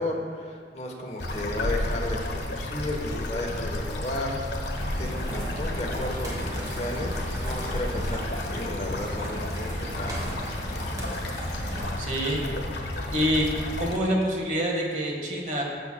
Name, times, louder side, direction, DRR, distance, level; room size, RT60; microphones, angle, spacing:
voice 1, 0.0-10.3, left 1 dB, 35° left, 0 dB, 1.0 m, -33 dB
sound 1, 1.2-14.0, left 1 dB, 85° left, 1.1 m, -32 dB
sound 2, 4.7-11.9, equal, 20° right, 1.6 m, -38 dB
voice 2, 12.0-12.4 13.1-13.5 13.8-15.6, equal, 45° right, -1 dB, 1.4 m, -26 dB
14.5 x 7.0 x 2.2 m, 2.1 s
head